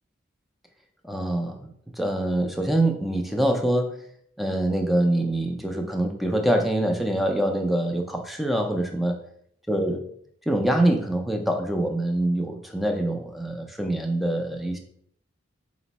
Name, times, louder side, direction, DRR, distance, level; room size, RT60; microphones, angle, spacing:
voice 1, 1.0-4.0 4.4-9.2 9.7-10.0 10.5-14.8, right 1 dB, ahead, 3 dB, 0.4 m, -25 dB
4.3 x 2.0 x 3.9 m, 0.66 s
head